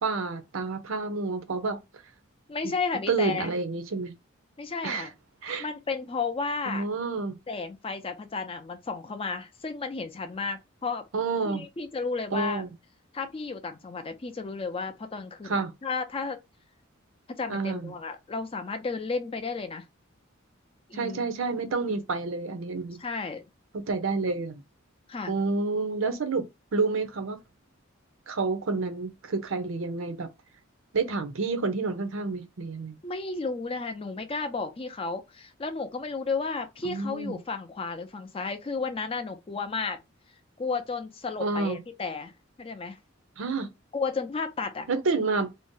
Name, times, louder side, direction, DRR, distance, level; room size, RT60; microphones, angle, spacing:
voice 1, 0.0-1.8 3.1-4.1 4.8-5.1 5.4-5.7 6.7-7.3 11.1-11.6 12.3-12.7 15.4-15.7 17.5-17.9 20.9-23.0 23.7-24.6 25.3-27.4 28.3-30.3 30.9-33.0 36.8-37.4 41.4-41.8 43.4-43.7 44.9-45.5, right 3 dB, 75° right, 0.6 m, -29 dB
voice 2, 2.5-3.5 4.6-5.1 5.6-6.8 7.5-11.0 11.4-12.6 13.1-16.4 17.3-19.9 20.9-21.3 23.0-23.4 25.1-25.3 33.0-40.0 40.6-42.3 42.6-43.0 43.9-44.9, left 4 dB, 25° left, 0.4 m, -33 dB
2.6 x 2.0 x 3.7 m
head